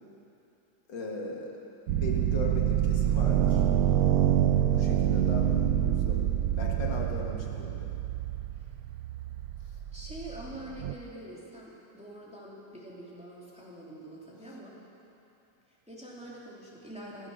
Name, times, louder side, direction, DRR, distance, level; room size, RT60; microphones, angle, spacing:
voice 1, 0.9-1.5 1.9-3.7 4.7-6.2 6.6-7.9, left 2 dB, 80° left, -1 dB, 2.4 m, -38 dB
sound 1, 1.9-10.9, right 11 dB, 70° right, 0.9 m, -27 dB
voice 2, 9.9-14.7 15.7-17.3, right 1 dB, 5° right, -5 dB, 2.7 m, -45 dB
15.0 x 15.0 x 6.4 m, 2.8 s
omnidirectional pair, 1.9 m